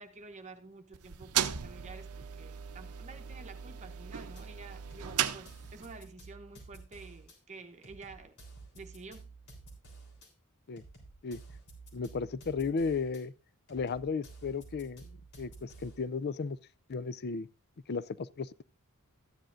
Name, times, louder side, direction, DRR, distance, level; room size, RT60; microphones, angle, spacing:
voice 1, 0.0-8.4 8.7-9.3, right 3 dB, 30° right, 0.9 m, -50 dB
sound 1, 0.9-6.0, right 9 dB, 85° right, 0.7 m, -36 dB
sound 2, 4.4-4.5 4.9-7.4 7.8-10.3 10.8-13.2 13.7-16.1, right 3 dB, 85° left, 3.6 m, -52 dB
voice 2, 11.9-13.3 13.7-16.6 16.9-17.5 17.9-18.6, left 5 dB, 50° left, 0.5 m, -35 dB
13.5 x 10.0 x 2.5 m
head